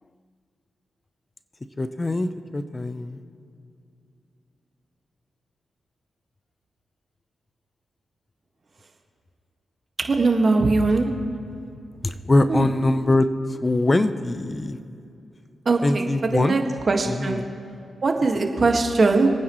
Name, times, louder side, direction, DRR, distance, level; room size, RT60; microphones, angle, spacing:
voice 1, 1.8-3.2 12.0-13.3 13.6-14.8 15.8-16.6 17.1-17.4, left 2 dB, 30° left, 11 dB, 0.7 m, -22 dB
voice 2, 10.0-11.1 12.5-12.7 15.7-16.6 16.9-17.4 18.0-19.3, right 3 dB, 50° right, 3 dB, 1.8 m, -20 dB
26.0 x 9.5 x 3.2 m, 2.6 s
supercardioid pair, 45°, 0 cm